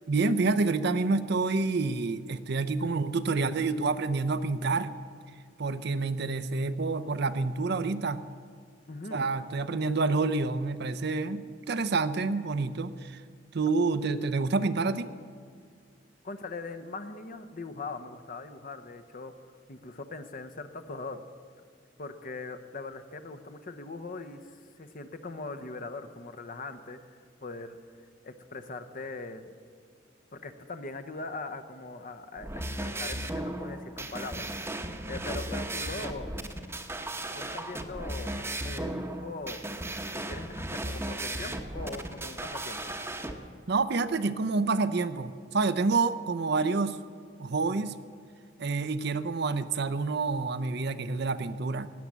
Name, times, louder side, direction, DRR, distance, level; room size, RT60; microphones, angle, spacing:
voice 1, 0.1-4.9 5.6-8.2 9.1-13.2 13.5-15.1 43.7-47.0 47.4-48.0 48.6-51.9, right 3 dB, 60° right, 12 dB, 0.6 m, -28 dB
voice 2, 8.9-9.3 16.2-19.3 19.7-21.2 22.0-27.0 27.4-27.8 28.2-29.5 30.3-36.3 37.3-39.6 40.1-42.8, left 3 dB, 45° left, 10 dB, 0.9 m, -41 dB
sound 1, 32.4-43.3, right 1 dB, 15° right, 0.9 m, -36 dB
17.0 x 9.5 x 7.4 m, 2.1 s
head